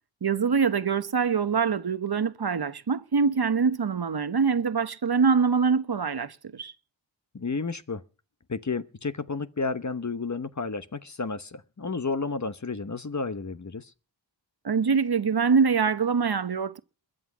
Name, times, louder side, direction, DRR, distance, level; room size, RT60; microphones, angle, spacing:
voice 1, 0.2-6.7 14.6-16.8, right 5 dB, 55° right, 0.9 m, -24 dB
voice 2, 7.3-8.0 8.5-13.9, left 4 dB, 40° left, 0.9 m, -31 dB
21.5 x 7.7 x 6.1 m
wide cardioid pair, 65°, 47 cm